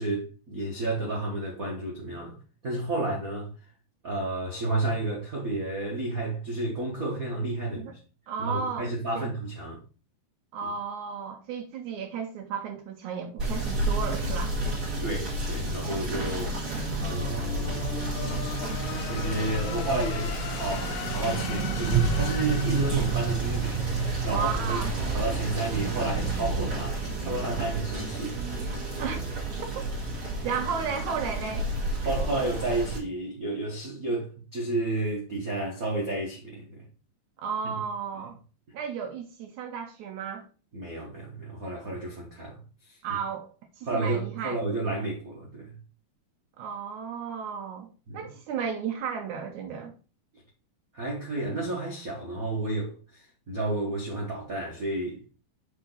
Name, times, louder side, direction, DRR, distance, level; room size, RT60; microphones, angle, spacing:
voice 1, 0.0-2.4 2.6-3.5 4.0-7.9 8.4-9.8 10.6-10.7 14.9-16.6 17.0-17.8 19.0-28.4 28.8-29.0 32.0-36.9 37.6-37.7 40.7-42.6 42.9-43.0 43.9-45.7 48.1-48.3 50.9-55.2, right 2 dB, 60° right, 0.9 m, -31 dB
voice 2, 8.3-9.3 10.5-14.5 24.3-24.9 29.0-29.2 29.8-29.9 30.4-31.7 37.4-38.4 38.7-40.5 43.0-43.5 43.8-44.6 46.6-49.9, right 6 dB, 75° right, 1.9 m, -34 dB
Rain / Motor vehicle (road), 13.4-33.0, right 3 dB, 35° right, 3.7 m, -30 dB
sound 1, 14.4-24.6, left 8 dB, 75° left, 2.2 m, -40 dB
sound 2, 20.6-26.5, left 1 dB, 15° left, 2.4 m, -44 dB
7.5 x 4.3 x 4.0 m
omnidirectional pair, 4.3 m